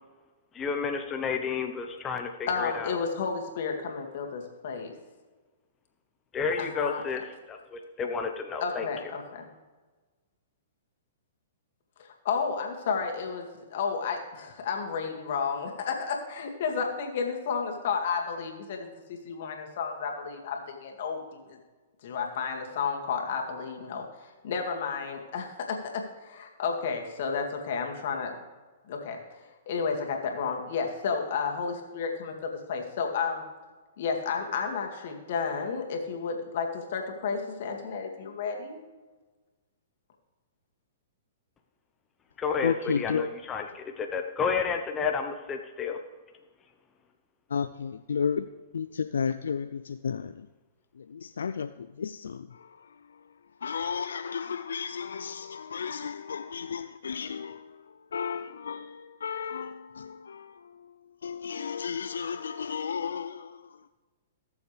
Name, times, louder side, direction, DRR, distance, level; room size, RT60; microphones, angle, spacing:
voice 1, 0.5-2.9 6.3-8.9 42.4-46.0, left 5 dB, 20° left, 4 dB, 0.9 m, -31 dB
voice 2, 2.5-4.9 6.6-7.0 8.6-9.5 12.0-21.6 22.0-28.4 28.9-33.4 34.0-38.8, left 5 dB, 60° left, 2 dB, 2.2 m, -32 dB
voice 3, 42.6-43.3 47.5-48.5 48.7-50.3 51.1-51.7 52.0-52.5 53.6-57.8 58.1-60.5 61.2-63.6, left 6 dB, 80° left, 11 dB, 0.4 m, -32 dB
18.5 x 7.1 x 3.4 m, 1.3 s
hypercardioid pair, 125°, 0 cm